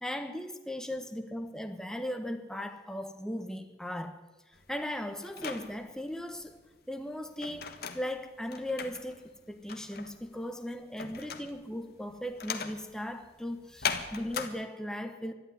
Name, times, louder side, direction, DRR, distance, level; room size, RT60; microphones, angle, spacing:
voice 1, 0.0-4.2 4.7-6.6 6.9-15.3, left 1 dB, 5° left, 6 dB, 1.1 m, -38 dB
sound 1, 4.5-14.5, left 6 dB, 60° left, 1.4 m, -39 dB
12.5 x 11.5 x 9.6 m, 1.2 s
head